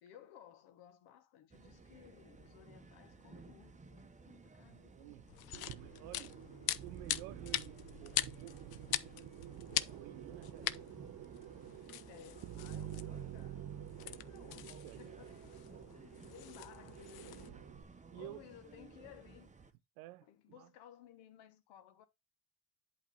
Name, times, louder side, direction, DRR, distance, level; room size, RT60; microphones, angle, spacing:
voice 1, 0.0-5.2 12.1-15.6 16.0-17.6 17.9-19.5 20.2-22.1, left 11 dB, 75° left, 1.3 m, -58 dB
sound 1, 1.5-19.7, right 4 dB, 15° right, 0.9 m, -58 dB
voice 2, 4.7-5.3 5.6-6.4 6.8-9.0 9.9-10.9 14.0-14.1 14.7-15.1 15.5-15.7 18.1-18.5 20.0-20.7, right 18 dB, 85° right, 0.7 m, -53 dB
sound 2, 5.3-17.5, left 14 dB, 60° left, 0.6 m, -43 dB
sound 3, 5.5-17.8, right 11 dB, 50° right, 0.8 m, -49 dB
8.2 x 3.2 x 5.6 m
supercardioid pair, 70°, 43 cm